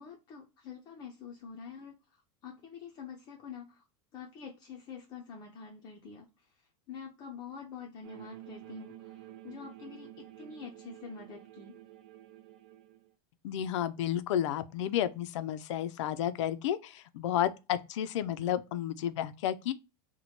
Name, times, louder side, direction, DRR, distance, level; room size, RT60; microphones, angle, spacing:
voice 1, 0.0-3.8 4.1-11.8, left 6 dB, 25° left, 0.5 m, -47 dB
sound 1, 8.0-13.1, right 14 dB, 55° right, 0.4 m, -50 dB
voice 2, 13.4-19.7, left 11 dB, 85° left, 0.4 m, -32 dB
2.9 x 2.1 x 4.1 m
supercardioid pair, 165°, 15 cm